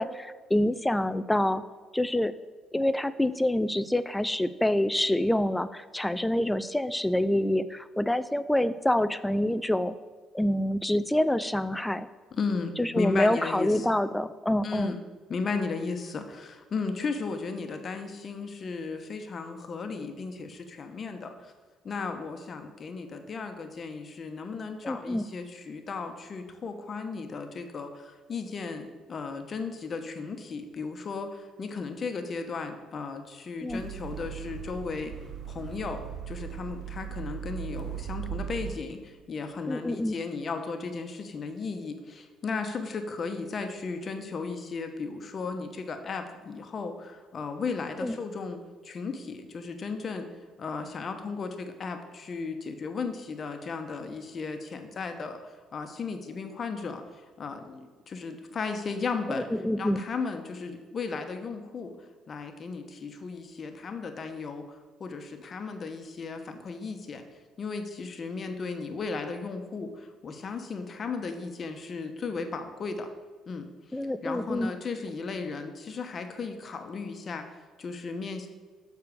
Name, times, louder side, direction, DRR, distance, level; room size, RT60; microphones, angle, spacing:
voice 1, 0.0-1.6 1.9-2.3 2.7-9.9 10.3-12.1 12.8-14.9 24.8-25.2 33.6-33.8 39.7-40.2 48.0-48.1 59.3-60.0 73.9-74.7, left 1 dB, 10° left, 14 dB, 0.4 m, -26 dB
voice 2, 12.3-14.0 14.6-15.0 15.3-21.5 21.8-35.1 35.5-50.3 50.6-59.5 59.8-61.9 62.3-67.2 67.6-73.1 73.5-77.5 77.8-78.5, left 4 dB, 45° left, 6 dB, 1.0 m, -35 dB
sound 1, 33.7-38.8, right 9 dB, 60° right, 0.9 m, -38 dB
6.7 x 4.7 x 6.8 m, 1.4 s
supercardioid pair, 75°, 0 cm